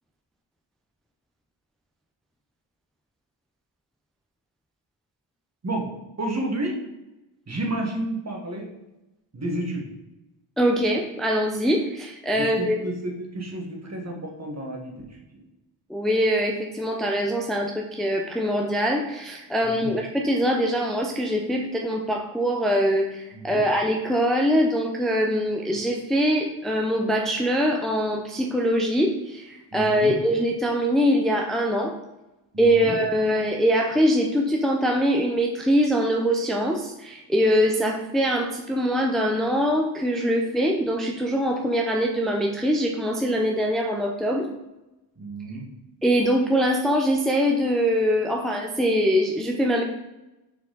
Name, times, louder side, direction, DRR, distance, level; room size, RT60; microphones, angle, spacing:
voice 1, 6.2-6.8 7.5-8.7 9.3-9.9 12.3-14.9 19.6-19.9 23.3-23.6 29.7-30.2 32.5-32.9 45.2-45.7, right 1 dB, 35° right, 1 dB, 1.5 m, -31 dB
voice 2, 10.6-12.8 15.9-31.9 32.6-44.5 46.0-49.8, equal, ahead, 0 dB, 0.6 m, -23 dB
6.3 x 4.6 x 3.9 m, 0.99 s
wide cardioid pair, 105°, 47 cm